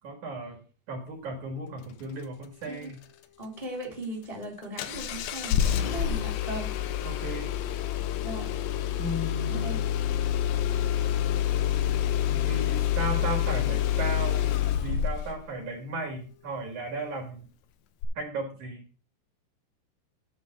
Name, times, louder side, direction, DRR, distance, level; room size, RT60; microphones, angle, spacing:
voice 1, 0.0-0.6 0.9-3.0 7.0-7.5 9.0-9.8 12.3-14.5 14.8-17.5 18.2-18.8, right 2 dB, 55° right, 2 dB, 2.7 m, -35 dB
voice 2, 3.4-6.7 8.2-8.5 9.5-9.8, right 1 dB, 10° left, -1 dB, 2.2 m, -38 dB
Engine starting, 4.8-15.4 18.0-18.1, left 10 dB, 80° left, 2.3 m, -27 dB
10.5 x 3.8 x 7.1 m, 0.37 s
omnidirectional pair, 4.7 m